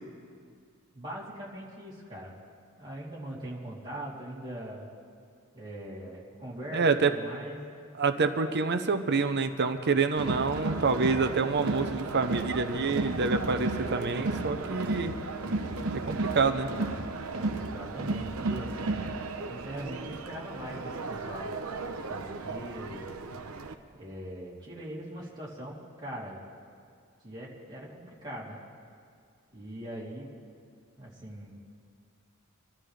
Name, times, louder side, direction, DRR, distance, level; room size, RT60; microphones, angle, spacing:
voice 1, 0.9-2.4 2.8-4.9 5.5-7.6 17.5-19.1 19.5-21.5 22.1-23.1 23.9-26.4 27.2-28.6 29.5-30.3 31.0-31.7, equal, 20° right, -7 dB, 3.1 m, -41 dB
voice 2, 6.7-7.1 7.9-15.1 15.9-16.7, right 4 dB, 55° right, 8 dB, 0.8 m, -27 dB
Crowd, 10.2-23.7, right 3 dB, 85° right, 0.8 m, -34 dB
25.5 x 12.5 x 3.3 m, 2.2 s
head